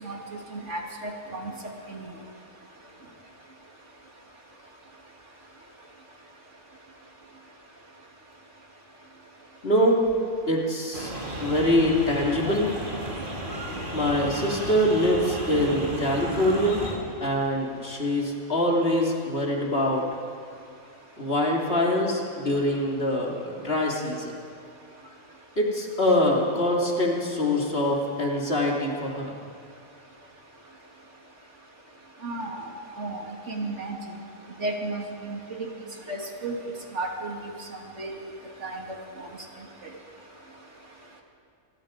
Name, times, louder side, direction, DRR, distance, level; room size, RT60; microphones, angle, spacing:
voice 1, 0.0-1.5 1.9-2.1 32.2-32.7 33.0-34.0 34.6-35.7 36.1-36.5 36.9-37.5 38.0-38.1 38.6-38.8 39.2-39.3, right 2 dB, 55° right, 0 dB, 2.8 m, -33 dB
voice 2, 9.6-10.1 10.5-11.1 11.4-12.7 13.9-16.8 17.2-20.0 21.2-24.4 25.6-29.3, left 1 dB, 45° left, -1 dB, 3.0 m, -24 dB
sound 1, 10.9-17.0, right 1 dB, 35° right, 3.3 m, -34 dB
26.5 x 22.5 x 5.2 m, 2.5 s
omnidirectional pair, 1.5 m